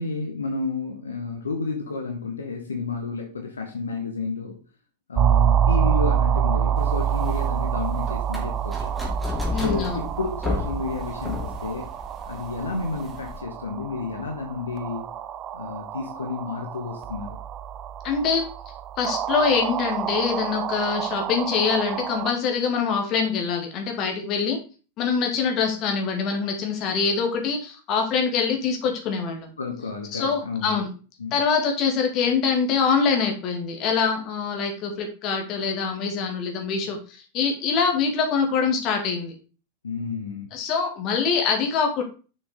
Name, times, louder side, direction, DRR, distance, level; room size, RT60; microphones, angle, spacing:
voice 1, 0.0-4.6 5.1-8.9 9.5-11.9 12.3-15.0 15.5-17.4 29.6-30.8 31.2-31.4 39.8-40.5, left 4 dB, 70° left, 3 dB, 1.3 m, -31 dB
sound 1, 5.2-22.3, right 9 dB, 30° right, 0.6 m, -27 dB
sound 2, 6.8-13.4, left 2 dB, 5° left, 3.1 m, -33 dB
voice 2, 9.5-10.0 18.0-18.5 19.0-24.6 25.0-29.5 30.1-30.9 31.3-39.3 40.5-42.0, left 5 dB, 35° left, 3 dB, 2.1 m, -24 dB
6.9 x 6.3 x 3.7 m, 0.35 s
figure-of-eight pair, 90°, 0 cm